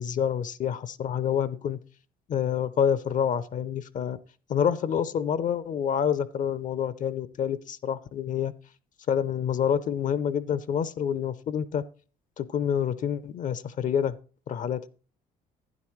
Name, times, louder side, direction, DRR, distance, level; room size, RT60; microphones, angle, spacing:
voice 1, 0.0-1.8 2.3-4.2 4.5-8.5 9.1-11.8 12.4-14.1 14.5-14.9, left 8 dB, 50° left, 15 dB, 0.6 m, -27 dB
12.0 x 9.6 x 3.1 m, 0.39 s
cardioid pair, 110°, 17 cm